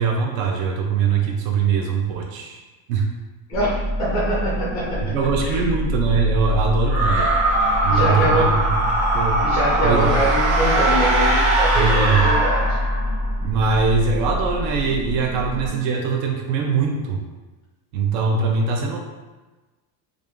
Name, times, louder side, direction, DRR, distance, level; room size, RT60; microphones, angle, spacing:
voice 1, 0.0-2.6 2.9-3.1 5.1-7.3 7.8-9.4 9.8-10.1 11.8-12.3 13.4-17.2 17.9-19.0, right 5 dB, 65° right, 1 dB, 0.6 m, -22 dB
voice 2, 3.5-5.0 5.4-5.6 7.9-8.6 9.4-12.8, equal, 10° left, -6 dB, 0.3 m, -24 dB
sound 1, 3.5-15.7, equal, 25° right, 0.9 m, -25 dB
sound 2, 6.9-13.3, right 2 dB, 85° right, 0.9 m, -21 dB
3.4 x 2.5 x 3.4 m, 1.2 s
cardioid pair, 180°, 47 cm